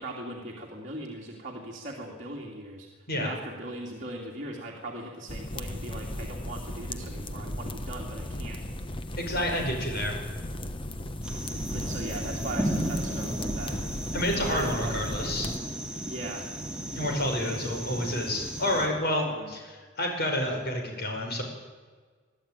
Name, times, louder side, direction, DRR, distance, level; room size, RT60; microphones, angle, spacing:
voice 1, 0.0-2.9 3.2-8.6 11.7-13.8 14.1-15.0 16.1-16.5 17.4-17.8 19.4-19.5, right 1 dB, 40° right, -2 dB, 2.7 m, -39 dB
sound 1, 5.3-15.6, left 1 dB, 25° left, 1.1 m, -36 dB
voice 2, 9.2-10.2 14.1-15.5 17.0-21.4, left 1 dB, 55° left, 2 dB, 5.2 m, -29 dB
sound 2, 11.2-18.9, right 1 dB, 5° right, 2.5 m, -34 dB
23.0 x 13.0 x 9.1 m, 1.5 s
head